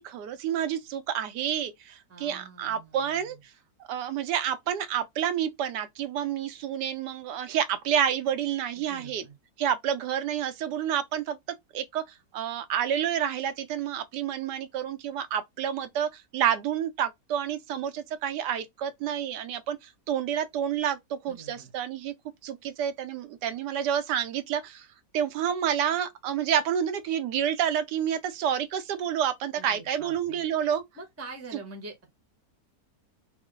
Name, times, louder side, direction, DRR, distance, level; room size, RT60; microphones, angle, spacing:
voice 1, 0.0-3.4 3.9-9.2 9.6-11.4 11.7-12.0 12.3-22.1 22.4-24.9 25.1-30.8, right 9 dB, 80° right, 1.2 m, -29 dB
voice 2, 2.1-3.4 8.8-9.3 21.3-21.7 29.5-30.4 30.9-32.1, right 3 dB, 15° right, 0.6 m, -45 dB
3.1 x 2.0 x 3.7 m
omnidirectional pair, 1.8 m